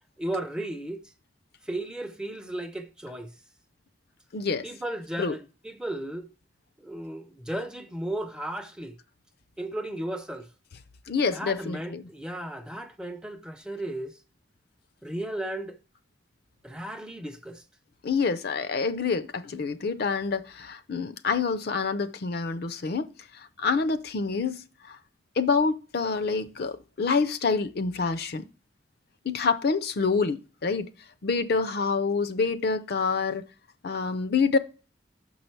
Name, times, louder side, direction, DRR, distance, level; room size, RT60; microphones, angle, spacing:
voice 1, 0.2-1.1 1.6-3.3 4.6-6.3 6.8-9.0 9.6-10.5 11.3-14.2 15.0-15.8 16.6-17.6, right 1 dB, 5° right, 0.5 m, -35 dB
voice 2, 4.3-4.7 5.2-5.4 11.1-12.0 18.0-23.1 23.4-25.0 25.4-28.5 29.2-30.9 31.2-33.4 33.8-34.6, left 4 dB, 55° left, 0.5 m, -27 dB
6.0 x 5.5 x 4.5 m
head